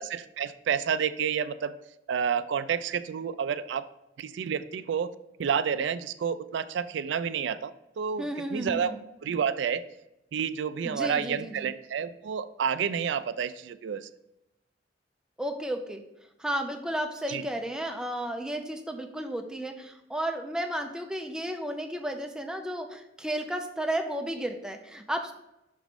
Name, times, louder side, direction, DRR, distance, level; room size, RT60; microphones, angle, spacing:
voice 1, 0.0-1.8 2.1-3.8 4.2-5.1 5.4-8.9 9.2-9.8 10.3-14.1 17.3-17.4, right 7 dB, 75° right, 13 dB, 0.3 m, -30 dB
voice 2, 8.2-9.0 10.8-11.7 15.4-16.0 16.4-25.3, right 1 dB, 5° right, 4 dB, 0.5 m, -33 dB
6.0 x 3.0 x 5.2 m, 0.89 s
head